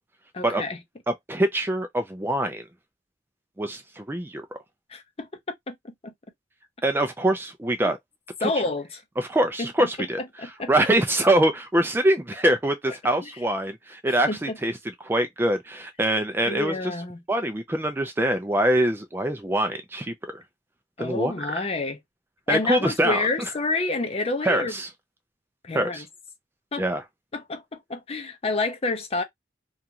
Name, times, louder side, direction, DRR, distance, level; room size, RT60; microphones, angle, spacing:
voice 1, 0.3-0.8 4.9-5.3 5.7-6.1 7.8-7.9 8.4-9.0 9.6-9.9 10.4-10.7 13.2-13.3 14.3-14.6 16.5-17.2 21.0-22.0 22.5-24.7 25.6-26.1 26.7-26.8 27.3-29.2, left 3 dB, 35° left, 0.6 m, -29 dB
voice 2, 1.1-2.6 3.6-4.5 6.8-8.0 8.4-8.5 9.2-10.2 10.7-16.9 17.3-20.4 21.0-21.7 22.5-23.3 24.4-24.9 25.7-26.0 26.8-27.0, right 1 dB, 10° right, 0.3 m, -24 dB
2.6 x 2.4 x 2.7 m
head